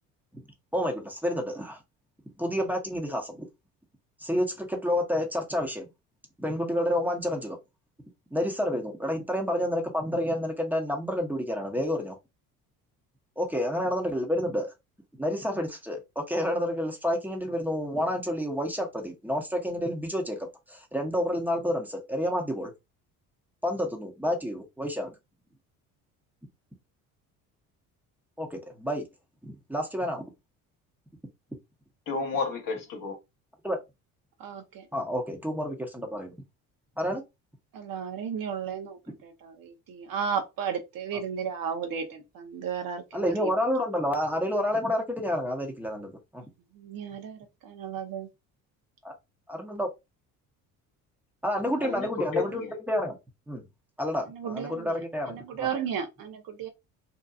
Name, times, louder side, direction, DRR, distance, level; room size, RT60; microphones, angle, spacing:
voice 1, 0.7-1.8 2.4-3.4 4.2-5.9 6.4-7.6 8.3-12.2 13.4-14.7 15.2-20.4 20.7-22.7 23.6-25.1 28.4-29.0 29.4-30.2 33.6-33.8 34.9-36.3 37.0-37.2 39.1-39.2 43.1-46.4 49.0-49.1 49.5-49.9 51.4-52.6 52.9-53.2 53.5-53.6 54.0-55.7, equal, 5° right, 0.8 m, -29 dB
voice 2, 32.1-33.1 51.8-52.7, left 5 dB, 50° left, 1.1 m, -32 dB
voice 3, 34.4-34.8 37.7-43.5 46.8-48.3 54.3-55.0 55.3-56.7, right 7 dB, 55° right, 0.8 m, -34 dB
2.8 x 2.3 x 2.3 m
hypercardioid pair, 60°, 42 cm